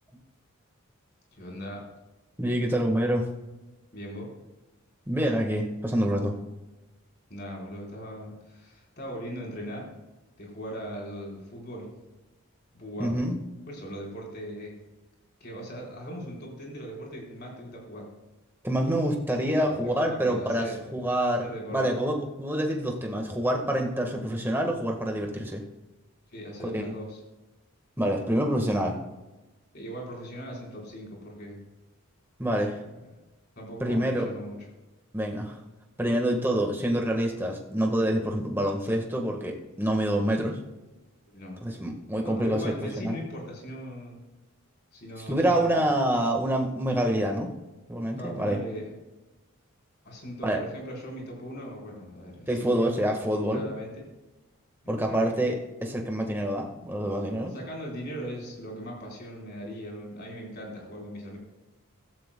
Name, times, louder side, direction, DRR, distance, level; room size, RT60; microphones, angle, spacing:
voice 1, 1.3-1.8 3.9-4.3 7.3-9.9 10.4-11.9 12.7-13.1 13.7-14.7 15.4-18.1 19.6-20.8 21.4-21.8 26.3-27.2 29.7-31.6 32.7-32.8 33.6-34.6 41.3-41.6 42.2-44.2 44.9-45.8 48.2-48.9 50.0-53.0 53.5-54.0 54.8-55.4 57.5-61.4, equal, 50° left, -2 dB, 4.3 m, -39 dB
voice 2, 2.4-3.3 5.1-6.4 13.0-13.4 18.6-21.4 21.7-25.6 26.7-26.9 28.0-29.0 32.4-32.8 33.8-34.3 35.1-35.6 36.0-40.6 41.6-43.2 45.3-47.5 47.9-48.6 50.4-50.6 52.5-53.6 54.9-55.6 55.8-57.5, right 1 dB, 10° right, 2 dB, 1.4 m, -26 dB
15.5 x 13.5 x 2.2 m, 1.1 s
head